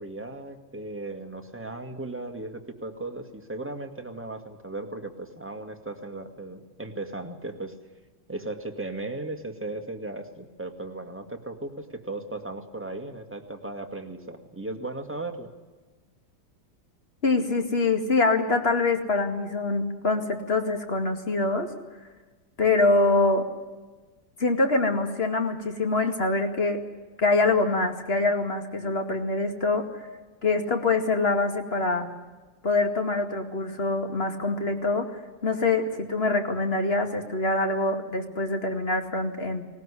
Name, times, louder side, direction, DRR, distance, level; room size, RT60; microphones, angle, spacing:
voice 1, 0.0-7.7 8.3-15.5, right 2 dB, 5° right, 4 dB, 1.8 m, -36 dB
voice 2, 17.2-21.7 22.6-23.5 24.4-26.8 27.2-29.9 30.4-32.1 32.6-39.6, left 3 dB, 30° left, 6 dB, 2.4 m, -24 dB
19.0 x 19.0 x 9.9 m, 1.3 s
omnidirectional pair, 2.0 m